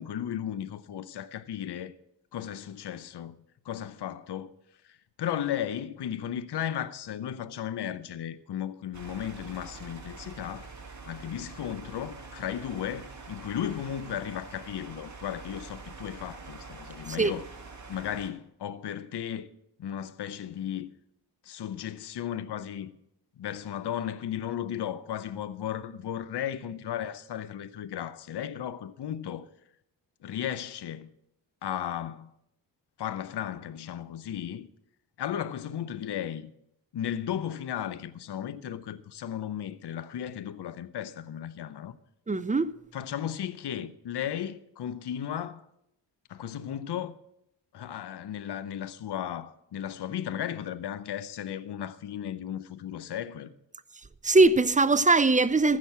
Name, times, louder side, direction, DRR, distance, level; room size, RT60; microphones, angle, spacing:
voice 1, 0.0-1.9 2.3-3.4 3.6-4.5 4.8-10.7 11.1-17.5 17.9-19.5 19.8-20.9 21.4-22.9 23.4-29.5 30.2-31.1 31.6-32.3 33.0-34.7 35.2-36.5 36.9-42.0 42.9-45.7 46.3-47.1 47.7-53.5, left 10 dB, 65° left, 0.8 m, -35 dB
sound 1, 8.9-18.3, right 4 dB, 40° right, 2.4 m, -45 dB
voice 2, 42.3-42.7 54.2-55.8, right 3 dB, 20° right, 0.5 m, -21 dB
15.0 x 6.4 x 7.4 m
cardioid pair, 80°, 44 cm